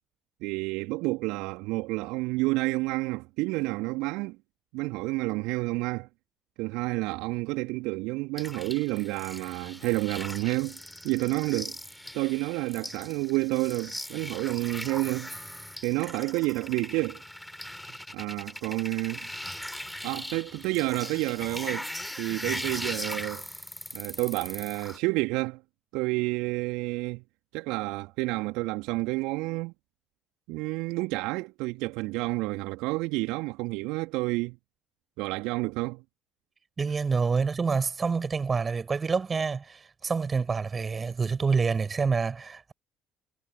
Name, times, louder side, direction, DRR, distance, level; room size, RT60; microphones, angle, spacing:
voice 1, 0.4-4.4 4.7-6.1 6.6-10.8 11.0-11.7 12.1-15.3 15.8-17.2 18.1-19.3 20.0-21.9 22.2-23.5 23.9-25.6 25.9-27.2 27.5-29.7 30.5-34.6 35.2-36.0, right 23 dB, 70° right, 2.9 m, -29 dB
sound 1, 8.4-25.0, left 1 dB, 5° left, 4.0 m, -39 dB
voice 2, 36.8-42.7, right 5 dB, 35° right, 7.2 m, -27 dB
figure-of-eight pair, 50°, 0 cm